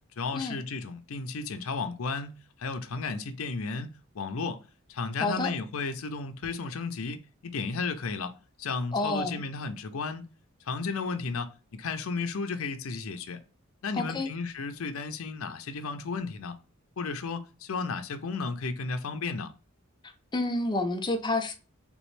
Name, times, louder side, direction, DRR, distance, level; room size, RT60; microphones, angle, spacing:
voice 1, 0.2-4.6 4.9-8.3 8.6-10.2 10.6-13.4 13.8-16.5 17.0-19.5, left 4 dB, 85° left, 0.5 m, -33 dB
voice 2, 5.2-5.5 8.9-9.4 13.9-14.3 20.3-21.5, left 2 dB, 20° left, 0.5 m, -29 dB
3.6 x 3.0 x 3.1 m
head